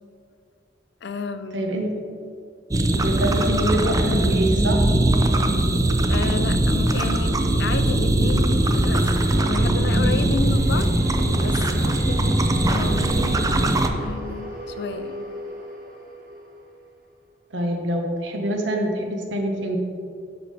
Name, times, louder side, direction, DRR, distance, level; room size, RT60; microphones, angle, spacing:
voice 1, 1.0-1.6 6.1-10.9 11.4-15.3, left 4 dB, 65° left, 10 dB, 0.5 m, -32 dB
voice 2, 1.5-1.9 3.0-4.8 17.5-19.8, right 1 dB, 85° right, 2 dB, 1.1 m, -25 dB
sound 1, 2.7-13.9, right 1 dB, 20° right, 0.4 m, -20 dB
sound 2, 7.3-17.3, right 1 dB, 50° right, 1.3 m, -39 dB
8.9 x 6.1 x 3.3 m, 2.4 s
head